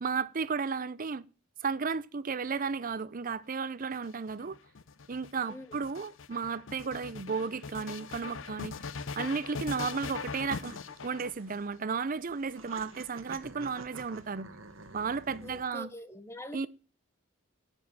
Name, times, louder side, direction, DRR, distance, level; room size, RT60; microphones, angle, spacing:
voice 1, 0.0-1.2 1.6-4.6 5.1-8.8 9.2-10.8 11.0-14.5 14.9-15.9 16.5-16.7, right 5 dB, 45° right, 0.6 m, -34 dB
sound 1, 3.8-11.8 12.6-13.4, left 5 dB, 70° left, 0.7 m, -41 dB
sound 2, 9.4-15.6, right 3 dB, 80° right, 1.3 m, -50 dB
voice 2, 15.4-16.7, left 1 dB, 15° left, 0.7 m, -44 dB
11.0 x 5.4 x 7.1 m
head